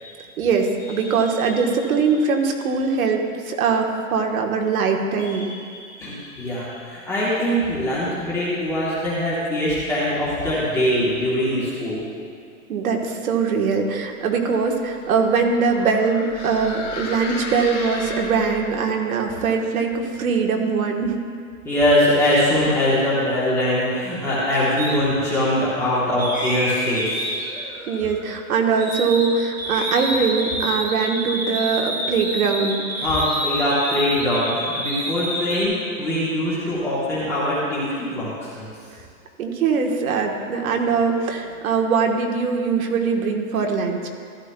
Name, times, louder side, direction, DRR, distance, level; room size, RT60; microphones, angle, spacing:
voice 1, 0.4-5.5 12.7-21.1 27.9-32.8 39.4-44.1, right 5 dB, 75° right, 2 dB, 1.3 m, -22 dB
voice 2, 1.0-1.5 5.2-12.0 21.6-27.3 33.0-38.7, left 1 dB, 5° left, -9 dB, 1.0 m, -22 dB
sound 1, 14.3-18.8, left 3 dB, 90° left, 2.7 m, -35 dB
sound 2, 24.8-25.0 26.2-29.3 29.6-35.6, equal, 15° right, 0.4 m, -28 dB
14.0 x 12.0 x 2.2 m, 2.2 s
supercardioid pair, 180°, 42 cm